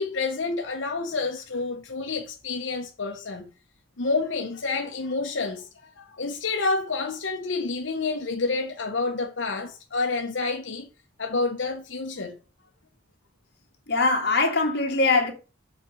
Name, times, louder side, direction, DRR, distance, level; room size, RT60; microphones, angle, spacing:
voice 1, 0.0-3.5 4.0-5.7 6.0-10.9 11.2-12.4, left 3 dB, 85° left, 1.1 m, -29 dB
voice 2, 13.9-15.3, left 3 dB, 60° left, 2.2 m, -22 dB
7.3 x 4.4 x 6.5 m
head